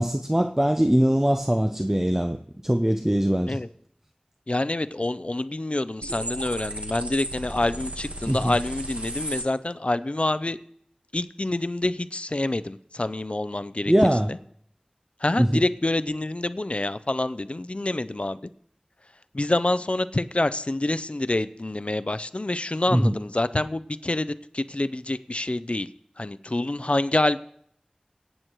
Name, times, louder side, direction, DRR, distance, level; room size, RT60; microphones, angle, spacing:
voice 1, 0.0-2.4 2.6-3.6 8.3-8.5 13.9-14.3 15.4-15.6 22.9-23.2, equal, 15° right, 6 dB, 0.6 m, -21 dB
voice 2, 4.5-10.6 11.1-13.9 14.3-14.4 15.2-18.4 19.3-25.9 26.2-27.4, left 2 dB, 50° left, 14 dB, 0.5 m, -27 dB
sound 1, 6.0-9.4, right 1 dB, 60° right, 1.5 m, -34 dB
22.0 x 9.0 x 3.1 m, 0.65 s
wide cardioid pair, 45°, 3 cm